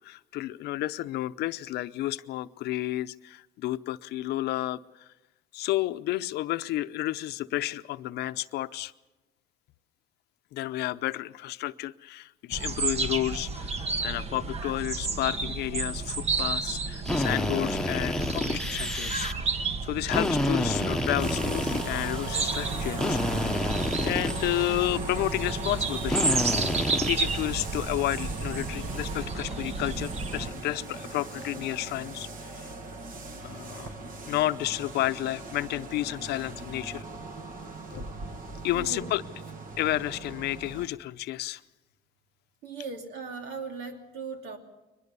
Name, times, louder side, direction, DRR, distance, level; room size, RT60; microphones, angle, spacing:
voice 1, 0.0-5.1 5.5-8.9 10.5-19.5 19.8-23.7 24.0-26.4 26.8-32.7 33.4-33.9 34.3-37.0 37.9-38.1 38.6-39.2 39.8-41.6, left 15 dB, 80° left, 13 dB, 0.7 m, -31 dB
sound 1, 12.5-30.5, right 4 dB, 40° right, 1.3 m, -32 dB
Drill, 17.0-19.3 20.1-22.3 23.0-24.9 26.1-27.4, left 1 dB, 5° left, 1.1 m, -29 dB
sound 2, 21.2-40.9, right 3 dB, 55° right, 2.1 m, -38 dB
voice 2, 38.7-39.1 42.6-44.6, right 4 dB, 90° right, 4 dB, 2.9 m, -38 dB
23.0 x 20.5 x 6.9 m, 1.0 s
cardioid pair, 110°, 17 cm